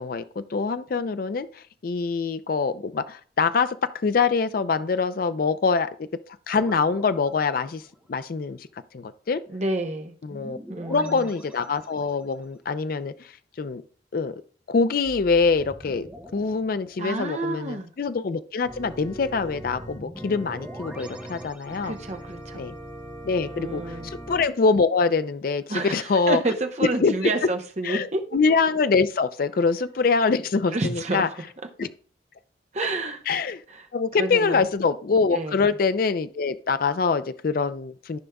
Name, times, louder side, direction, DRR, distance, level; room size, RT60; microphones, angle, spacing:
voice 1, 0.0-6.1 6.5-7.8 8.1-8.7 8.9-9.4 10.2-10.6 10.9-13.3 13.6-13.8 14.1-14.4 14.7-16.1 16.3-21.9 22.5-22.7 23.2-26.4 26.8-27.1 27.8-31.3 31.8-31.9 33.3-33.6 33.9-38.2, left 4 dB, 50° left, 12 dB, 0.4 m, -24 dB
sound 1, 6.5-8.1 10.3-12.4 15.0-17.5 19.3-22.3, equal, 10° right, 0.8 m, -45 dB
voice 2, 9.5-10.1 10.7-11.3 17.0-17.9 21.8-22.6 23.5-24.1 25.7-28.2 30.7-31.3 32.7-33.2 33.7-33.9 34.2-34.7 35.3-35.7, right 2 dB, 35° right, 5 dB, 0.8 m, -29 dB
Organ, 18.6-24.5, right 1 dB, 15° left, 2.5 m, -40 dB
13.5 x 5.2 x 2.3 m, 0.43 s
head